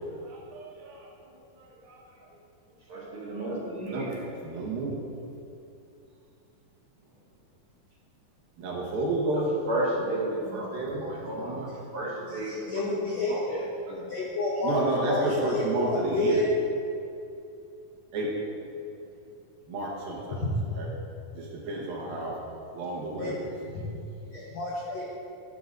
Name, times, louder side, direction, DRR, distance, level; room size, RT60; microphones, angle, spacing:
voice 1, 0.1-2.3 2.9-3.0 3.9-4.1 4.4-5.0 8.6-9.5 10.3-11.6 14.6-16.4 18.1-18.3 19.7-20.4 20.7-20.9 21.3-22.4 22.7-23.5, right 2 dB, 85° right, -3 dB, 3.3 m, -32 dB
voice 2, 2.9-4.2 9.3-10.7 11.1-14.1, right 1 dB, 60° right, -5 dB, 1.5 m, -33 dB
voice 3, 12.5-13.6 14.1-16.5 20.3-20.6 23.2-23.3 23.7-23.9 24.3-25.1, left 2 dB, 75° left, -4 dB, 1.5 m, -29 dB
11.5 x 9.2 x 2.6 m, 2.6 s
omnidirectional pair, 4.1 m